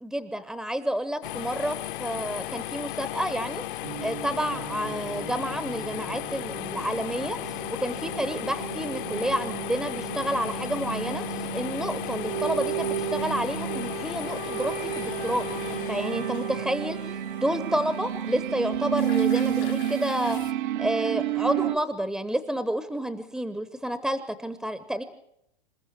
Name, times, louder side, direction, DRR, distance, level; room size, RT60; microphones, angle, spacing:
voice 1, 0.0-3.6 4.0-20.4 20.8-25.0, equal, ahead, 12 dB, 0.8 m, -30 dB
sound 1, 1.2-20.5, left 15 dB, 55° left, 1.2 m, -36 dB
sound 2, 3.8-21.8, right 12 dB, 50° right, 1.0 m, -32 dB
27.5 x 14.5 x 8.7 m, 0.79 s
hypercardioid pair, 145°, 31 cm